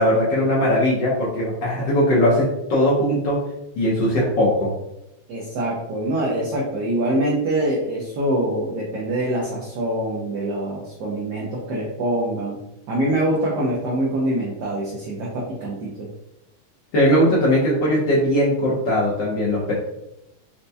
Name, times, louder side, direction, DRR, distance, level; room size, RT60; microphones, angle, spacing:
voice 1, 0.0-3.4 3.8-4.7 16.9-19.7, equal, 65° left, -6 dB, 1.3 m, -19 dB
voice 2, 5.3-12.6 12.9-16.1, right 1 dB, 70° right, -4 dB, 1.1 m, -24 dB
4.4 x 2.1 x 2.6 m, 0.87 s
omnidirectional pair, 2.3 m